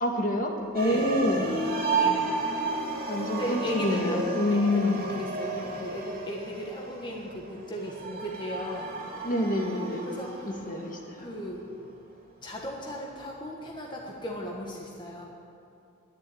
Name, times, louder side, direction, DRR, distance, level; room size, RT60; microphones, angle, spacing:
voice 1, 0.0-1.5 3.1-5.0 9.2-10.1 10.5-11.3, left 1 dB, 40° left, 1 dB, 1.7 m, -27 dB
sound 1, 0.7-11.1, right 3 dB, 40° right, 2.7 m, -33 dB
voice 2, 0.8-1.2 1.7-2.4 3.2-8.9 10.0-10.6 11.2-11.7 12.4-15.3, equal, 20° left, -2 dB, 1.4 m, -36 dB
10.5 x 10.0 x 9.9 m, 2.7 s
head